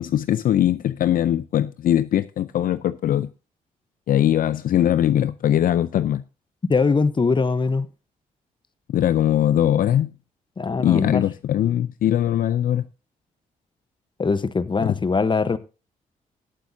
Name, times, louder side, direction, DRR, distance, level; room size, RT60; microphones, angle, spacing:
voice 1, 0.0-3.3 4.1-6.2 8.9-10.1 10.8-12.8, left 11 dB, 70° left, 0.5 m, -21 dB
voice 2, 6.7-7.9 10.6-11.3 14.2-15.6, left 4 dB, 30° left, 0.9 m, -21 dB
19.0 x 7.7 x 2.7 m
supercardioid pair, 60°, 15 cm